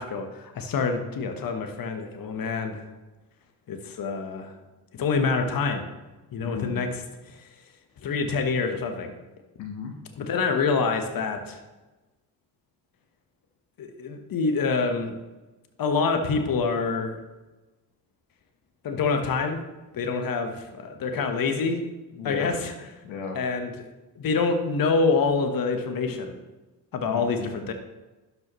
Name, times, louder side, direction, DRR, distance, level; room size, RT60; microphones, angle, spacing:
voice 1, 0.0-2.9 3.7-4.5 5.0-5.9 6.3-7.0 7.3-7.4 8.0-9.1 10.1-11.6 13.8-15.1 15.8-17.2 18.8-19.6 19.9-21.8 22.2-22.9 23.3-23.9 24.2-26.4 26.9-27.7, left 4 dB, 45° left, 6 dB, 1.2 m, -26 dB
voice 2, 6.4-6.8 9.6-9.9 22.2-22.5 23.0-23.4 27.0-27.7, left 5 dB, 70° left, 3 dB, 1.2 m, -36 dB
11.5 x 5.5 x 3.0 m, 1.1 s
hypercardioid pair, 45°, 48 cm